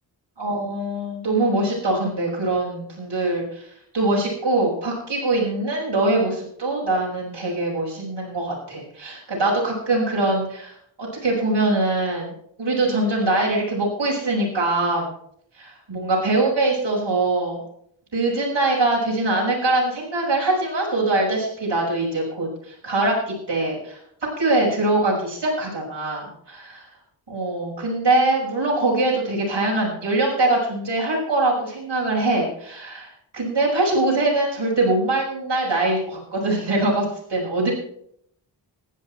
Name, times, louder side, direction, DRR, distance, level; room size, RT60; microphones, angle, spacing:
voice 1, 0.4-3.7 3.9-15.1 15.5-17.6 18.1-24.0 24.4-26.9 27.3-33.1 33.3-37.7, right 2 dB, 60° right, -4 dB, 6.4 m, -23 dB
16.0 x 12.5 x 4.5 m, 0.67 s
cardioid pair, 55°, 46 cm